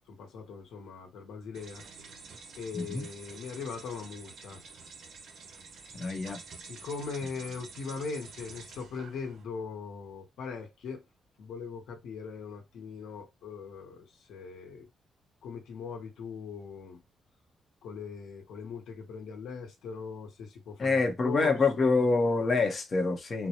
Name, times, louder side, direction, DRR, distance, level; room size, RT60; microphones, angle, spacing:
voice 1, 0.1-1.8 2.6-4.6 6.6-11.0 11.4-14.9 15.4-17.0 17.8-22.1, left 5 dB, 90° left, 1.0 m, -40 dB
sound 1, 1.5-9.4, right 4 dB, 65° right, 1.1 m, -49 dB
voice 2, 2.7-3.1 5.9-6.4 20.8-23.5, left 3 dB, 35° left, 0.9 m, -26 dB
4.0 x 2.2 x 2.9 m
cardioid pair, 135°, 0 cm